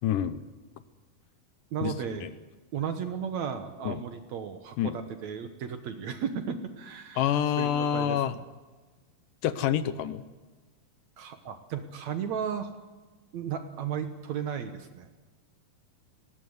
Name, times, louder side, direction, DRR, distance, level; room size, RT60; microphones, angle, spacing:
voice 1, 0.0-0.4 1.8-1.9 2.2-2.3 3.9-4.0 4.8-5.0 7.2-8.3 9.4-10.2, left 10 dB, 75° left, 13 dB, 2.3 m, -27 dB
voice 2, 1.7-2.3 2.7-8.4 11.2-12.7 13.3-15.1, right 7 dB, 65° right, 8 dB, 2.1 m, -35 dB
20.5 x 18.0 x 8.0 m, 1.3 s
omnidirectional pair, 4.1 m